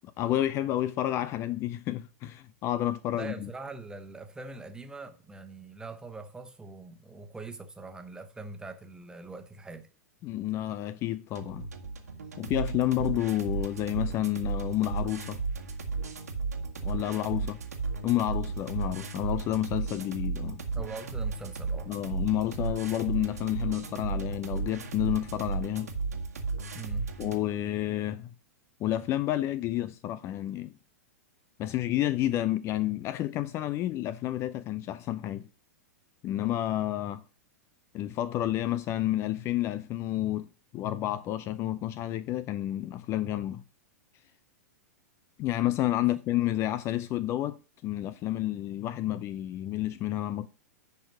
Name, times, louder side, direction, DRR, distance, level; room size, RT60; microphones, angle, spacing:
voice 1, 0.2-3.5 10.2-11.7 12.4-15.4 16.8-17.6 18.0-20.6 21.9-25.9 27.2-28.3 28.8-30.7 31.6-35.5 36.2-37.2 37.9-40.5 40.7-43.6 45.4-47.6 47.8-50.5, left 13 dB, 30° left, 0.5 m, -30 dB
voice 2, 3.1-9.9 17.4-17.5 20.7-21.9 26.7-27.1, right 3 dB, 10° right, 1.3 m, -42 dB
sound 1, 11.3-27.4, right 4 dB, 75° right, 1.8 m, -34 dB
10.5 x 4.5 x 6.2 m
figure-of-eight pair, 100°, 9 cm